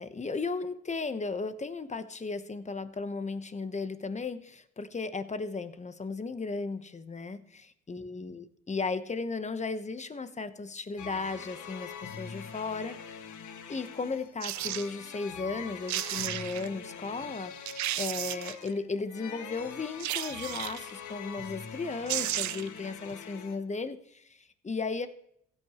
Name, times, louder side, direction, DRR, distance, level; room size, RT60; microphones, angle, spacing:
voice 1, 0.0-13.3 13.7-17.7 18.0-25.1, left 4 dB, 25° left, 11 dB, 1.0 m, -35 dB
sound 1, 11.0-23.6, left 7 dB, 75° left, 1.4 m, -44 dB
sound 2, 14.4-14.9 15.6-15.7 15.9-16.7 17.2-17.3 17.7-18.7 20.0-20.9 21.7-21.8 22.1-22.8 23.1-23.2, right 14 dB, 70° right, 0.6 m, -33 dB
15.5 x 8.9 x 3.0 m, 0.71 s
cardioid pair, 90°, 30 cm